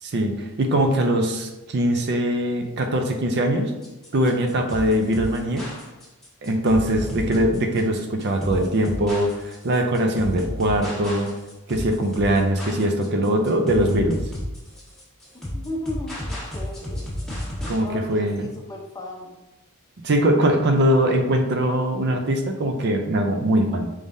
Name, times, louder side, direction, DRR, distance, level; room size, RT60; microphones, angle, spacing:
voice 1, 0.0-3.7 4.1-5.6 6.4-11.3 11.7-14.2 17.7-18.4 20.0-23.9, right 1 dB, 50° right, 5 dB, 0.5 m, -22 dB
sound 1, 3.8-17.8, left 1 dB, ahead, 1.3 m, -32 dB
voice 2, 6.7-7.3 15.3-17.1 17.8-19.4, left 1 dB, 15° left, 0 dB, 0.6 m, -35 dB
4.8 x 3.6 x 2.6 m, 1.0 s
head